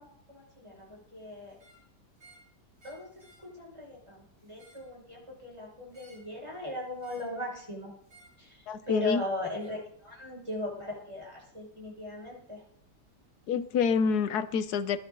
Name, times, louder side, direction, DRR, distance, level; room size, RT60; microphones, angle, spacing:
voice 1, 0.0-1.6 2.8-7.9 8.4-12.6, left 1 dB, 15° right, -3 dB, 6.0 m, -39 dB
sound 1, 1.5-1.8 2.2-2.5 2.8-3.5 4.4-4.9 5.9-6.3 7.0-7.4 8.0-8.4 9.6-9.8, right 1 dB, 35° right, 6.9 m, -59 dB
voice 2, 8.7-9.2 13.5-15.0, left 6 dB, 70° left, 13 dB, 1.4 m, -27 dB
21.0 x 11.0 x 3.9 m, 0.64 s
omnidirectional pair, 1.8 m